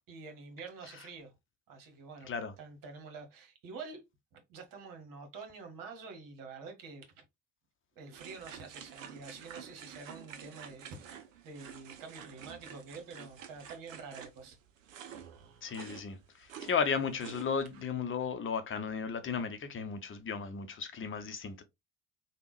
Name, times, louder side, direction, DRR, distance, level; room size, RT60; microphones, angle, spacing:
voice 1, 0.1-1.3 1.7-2.3 2.6-4.0 4.3-7.2 8.0-14.6 14.8-15.3, right 4 dB, 55° right, 1.2 m, -48 dB
sound 1, 8.1-17.9, right 8 dB, 85° right, 0.5 m, -50 dB
voice 2, 15.6-21.6, left 6 dB, 30° left, 0.8 m, -35 dB
3.4 x 2.3 x 3.1 m
figure-of-eight pair, 50°, 39 cm